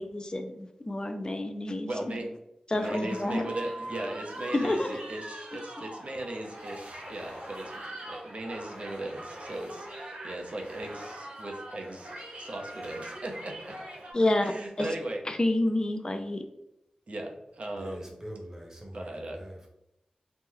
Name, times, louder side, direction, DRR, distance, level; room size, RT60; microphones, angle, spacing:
voice 1, 0.0-2.2 2.7-3.5 4.5-5.0 5.5-5.6 14.1-14.5 14.8-14.9 15.3-16.4, left 1 dB, 35° left, 6 dB, 0.4 m, -29 dB
voice 2, 1.9-2.3 2.7-12.1 12.4-13.7 14.4-15.2 17.1-18.1 18.9-19.4, right 1 dB, 60° right, 1 dB, 0.6 m, -38 dB
sound 1, 2.7-14.1, right 1 dB, 80° right, 0.9 m, -42 dB
voice 3, 17.7-19.7, equal, 20° right, -1 dB, 0.9 m, -43 dB
3.0 x 2.0 x 3.6 m, 0.86 s
wide cardioid pair, 60°, 2 cm